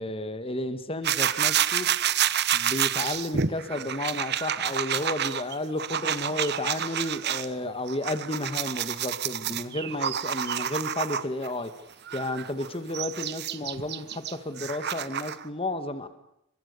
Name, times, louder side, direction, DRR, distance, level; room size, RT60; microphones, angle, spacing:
voice 1, 0.0-1.9 2.5-11.7 12.1-16.1, left 1 dB, 30° left, 1.8 m, -32 dB
sound 1, 1.0-7.5 7.9-11.5 12.1-15.4, right 9 dB, 55° right, 1.1 m, -29 dB
28.5 x 24.5 x 6.9 m
head